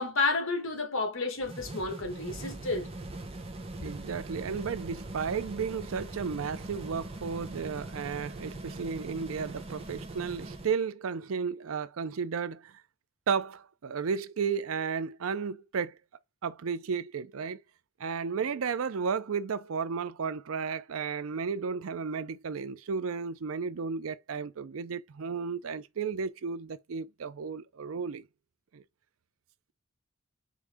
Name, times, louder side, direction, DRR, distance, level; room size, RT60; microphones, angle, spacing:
voice 1, 0.0-2.9, left 3 dB, 70° left, 1.3 m, -31 dB
sound 1, 1.4-10.8, right 2 dB, 30° right, 0.8 m, -41 dB
voice 2, 3.8-12.7 13.3-16.0 16.4-17.6 18.0-28.2 28.7-28.8, right 6 dB, 90° right, 0.5 m, -33 dB
4.8 x 2.6 x 3.5 m
head